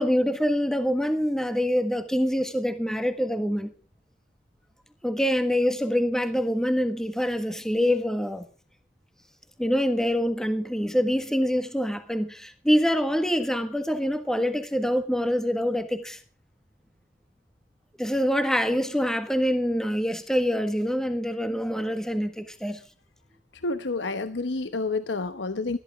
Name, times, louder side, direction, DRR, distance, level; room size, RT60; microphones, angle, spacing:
voice 1, 0.0-3.7 5.0-8.4 9.6-16.2 18.0-22.8, equal, 5° left, 1.5 m, -25 dB
voice 2, 23.6-25.8, left 3 dB, 75° left, 1.0 m, -29 dB
20.5 x 14.0 x 3.6 m
head